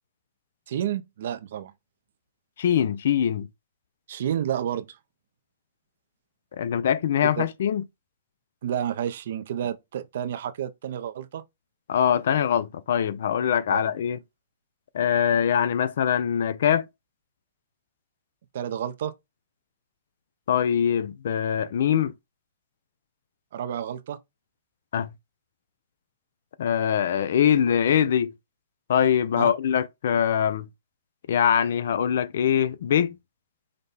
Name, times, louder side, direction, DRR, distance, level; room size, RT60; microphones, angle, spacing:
voice 1, 0.7-1.7 4.1-5.0 7.4-7.5 8.6-11.4 13.7-13.8 18.5-19.1 23.5-24.2 29.4-29.5, right 10 dB, 65° right, 0.6 m, -30 dB
voice 2, 2.6-3.5 6.6-7.8 11.9-14.2 14.9-16.9 20.5-22.1 24.9-25.1 26.6-28.3 28.9-30.7 31.3-33.2, left 9 dB, 70° left, 0.5 m, -23 dB
5.2 x 2.2 x 4.0 m
hypercardioid pair, 150°, 0 cm